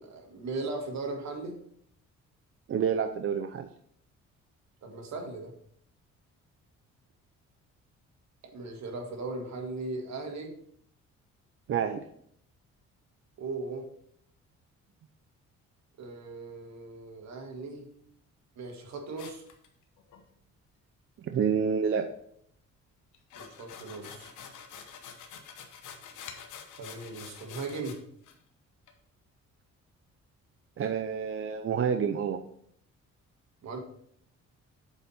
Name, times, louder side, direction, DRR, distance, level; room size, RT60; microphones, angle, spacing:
voice 1, 0.0-1.6 4.8-5.5 8.5-10.5 13.4-13.9 16.0-17.9 18.6-19.4 23.4-24.3 26.8-28.0 33.6-33.8, right 3 dB, 65° right, 3 dB, 1.6 m, -38 dB
voice 2, 2.7-3.7 11.7-12.0 21.2-22.1 30.8-32.4, right 7 dB, 45° right, 6 dB, 0.5 m, -28 dB
sound 1, 19.2-20.2 23.1-28.0 28.2-28.3 28.9-29.0, left 7 dB, 85° left, 1.0 m, -47 dB
8.0 x 4.3 x 4.2 m, 0.67 s
cardioid pair, 90°, 30 cm